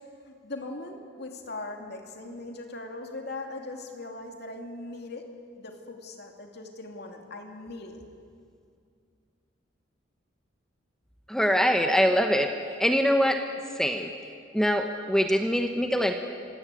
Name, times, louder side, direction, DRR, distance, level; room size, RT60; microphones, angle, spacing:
voice 1, 0.4-5.2 5.6-8.0, left 2 dB, 55° left, 3 dB, 2.6 m, -40 dB
voice 2, 11.3-12.5 12.8-13.4 13.8-14.1 14.5-16.1, equal, 5° left, 5 dB, 0.9 m, -23 dB
26.0 x 16.5 x 8.3 m, 2.3 s
head